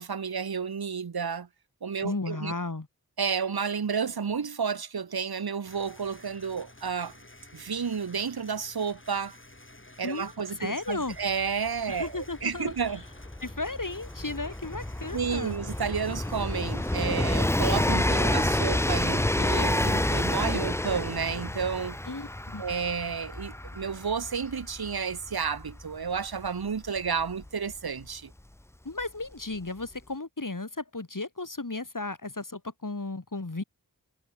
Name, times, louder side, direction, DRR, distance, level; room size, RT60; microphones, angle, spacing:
voice 1, 0.0-1.5 1.8-2.6 3.2-7.1 7.5-9.4 10.0-13.0 15.1-22.0 22.6-28.3, right 6 dB, 70° right, 1.1 m, -31 dB
voice 2, 2.0-2.9 10.0-10.3 10.6-11.2 11.9-12.7 13.4-15.6 22.1-22.6 28.8-33.6, left 3 dB, 55° left, 7.6 m, -34 dB
sound 1, 5.6-19.0, left 2 dB, 30° left, 6.7 m, -52 dB
Train, 11.1-11.2 11.4-28.0 29.0-29.1, left 1 dB, 5° left, 0.6 m, -29 dB
wide cardioid pair, 40°, 38 cm